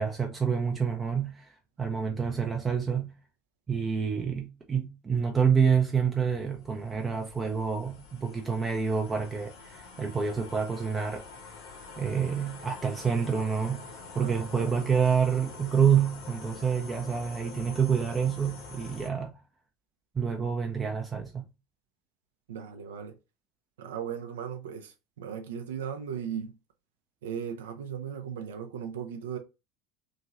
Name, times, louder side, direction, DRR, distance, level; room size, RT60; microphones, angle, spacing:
voice 1, 0.0-3.1 3.7-11.3 12.0-13.9 14.1-19.4 20.2-21.5, right 6 dB, 20° right, 0.5 m, -28 dB
sound 1, 5.9-19.1, left 4 dB, 55° left, 0.9 m, -46 dB
voice 2, 14.2-14.7 22.5-23.2 23.8-26.6 27.2-29.4, right 8 dB, 65° right, 0.6 m, -37 dB
3.0 x 2.7 x 2.5 m
figure-of-eight pair, 75°, 0 cm